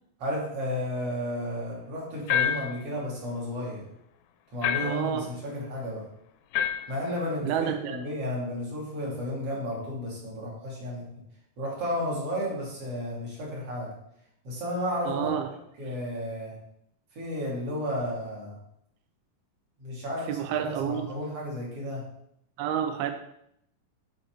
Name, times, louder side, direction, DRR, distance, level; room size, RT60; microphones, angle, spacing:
voice 1, 0.2-3.9 4.5-6.1 6.9-11.1 11.6-13.9 14.4-15.3 15.8-16.6 17.1-18.6 19.8-22.1, left 1 dB, 40° right, -4 dB, 3.6 m, -33 dB
sound 1, 2.3-2.8 4.6-5.1 6.5-7.0, left 9 dB, 80° left, 2.4 m, -27 dB
voice 2, 4.8-5.3 7.4-8.0 15.1-15.5 20.3-21.0 22.6-23.1, right 9 dB, 90° right, 7 dB, 2.6 m, -29 dB
13.0 x 4.6 x 4.7 m, 0.74 s
omnidirectional pair, 4.4 m